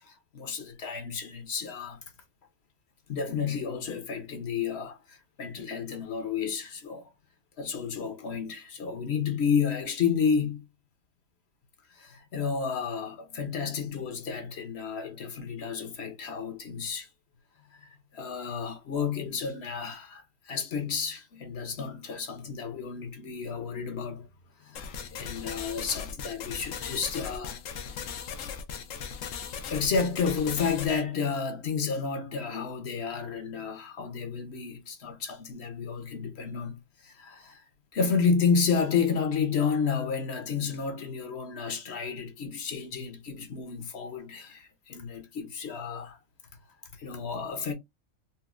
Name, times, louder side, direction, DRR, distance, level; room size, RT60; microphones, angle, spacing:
voice 1, 0.0-2.0 3.1-7.0 7.6-10.6 11.9-17.1 17.7-24.3 24.6-27.6 29.7-37.6 37.9-46.2 46.9-47.7, left 6 dB, 60° left, 1.0 m, -31 dB
sound 1, 24.8-31.0, left 7 dB, 85° left, 1.0 m, -38 dB
4.0 x 2.1 x 2.4 m
omnidirectional pair, 1.3 m